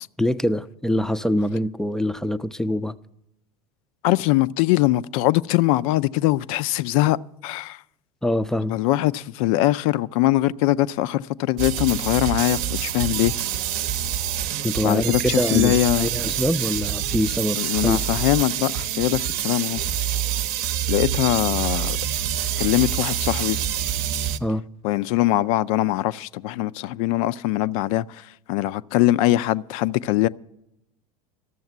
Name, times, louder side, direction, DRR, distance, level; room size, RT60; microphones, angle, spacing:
voice 1, 0.2-2.9 8.2-8.8 14.6-18.2 24.4-24.6, left 1 dB, 5° left, 0.4 m, -24 dB
voice 2, 4.0-7.2 7.4-7.8 8.7-13.3 14.8-16.1 17.6-19.8 20.9-22.0 22.6-23.6 24.8-30.3, left 16 dB, 60° left, 0.4 m, -22 dB
sound 1, 11.6-24.4, right 10 dB, 55° right, 0.7 m, -26 dB
12.5 x 7.1 x 9.3 m
hypercardioid pair, 85°, 20 cm